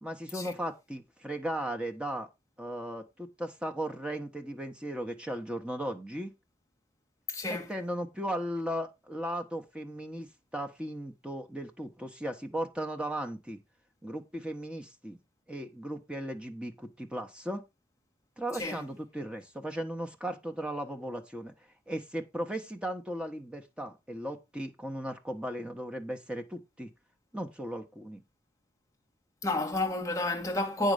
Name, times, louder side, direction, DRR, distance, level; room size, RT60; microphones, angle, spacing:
voice 1, 0.0-2.3 2.6-6.3 7.5-13.6 14.0-15.2 15.5-17.6 18.4-21.5 21.9-26.9 27.3-28.2, right 1 dB, 5° right, 1.2 m, -36 dB
voice 2, 7.3-7.7 18.6-18.8 29.4-30.9, left 2 dB, 15° left, 1.6 m, -30 dB
8.8 x 5.3 x 5.0 m
head